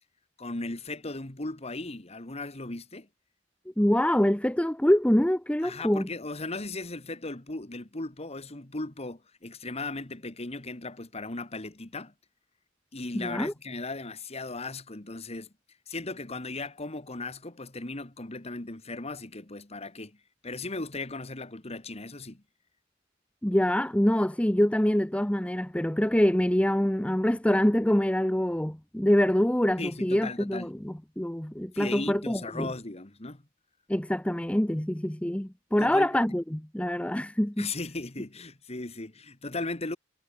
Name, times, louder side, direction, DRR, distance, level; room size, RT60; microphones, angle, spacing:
voice 1, 0.4-3.1 5.6-12.1 12.9-15.5 15.9-20.2 20.4-22.4 29.8-30.7 31.7-33.4 35.8-36.2 37.6-40.0, left 2 dB, 35° left, 1.8 m, -37 dB
voice 2, 3.8-6.1 13.1-13.5 23.4-32.7 33.9-37.7, equal, 5° left, 0.7 m, -25 dB
head